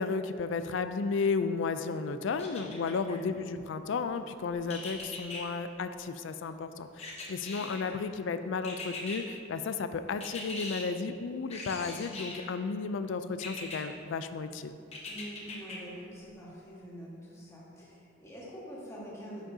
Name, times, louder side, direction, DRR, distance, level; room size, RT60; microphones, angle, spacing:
voice 1, 0.0-14.8, left 4 dB, 70° left, 10 dB, 0.4 m, -33 dB
sound 1, 2.4-3.2 4.7-5.4 7.0-7.9 8.6-9.2 10.2-10.8 11.5-12.5 13.4-13.8 14.9-15.8 16.2-16.3, left 3 dB, 35° left, 1.0 m, -41 dB
voice 2, 3.0-3.4 7.6-7.9 15.1-19.4, equal, 15° left, -7 dB, 1.4 m, -45 dB
9.5 x 6.2 x 2.7 m, 2.5 s
head